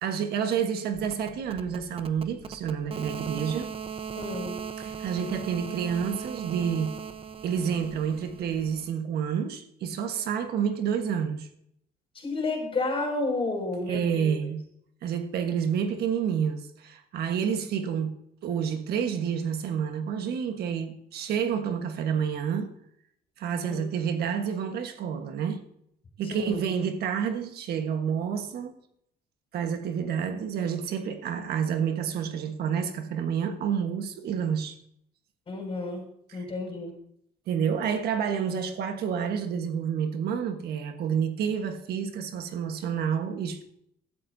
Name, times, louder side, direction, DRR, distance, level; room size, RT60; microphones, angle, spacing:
voice 1, 0.0-3.7 4.8-6.9 7.4-11.5 13.9-14.6 15.0-18.1 18.4-22.7 23.4-25.6 26.2-28.7 29.5-34.8 36.3-36.4 37.5-43.6, right 7 dB, 70° right, 1.5 m, -29 dB
sound 1, 0.9-8.8, right 7 dB, 35° right, 0.9 m, -38 dB
voice 2, 4.1-4.6 12.1-14.3 23.6-23.8 26.2-26.6 35.5-36.0 36.3-36.9, left 3 dB, 30° left, 6.4 m, -31 dB
16.5 x 13.0 x 2.8 m
cardioid pair, 110°, 17 cm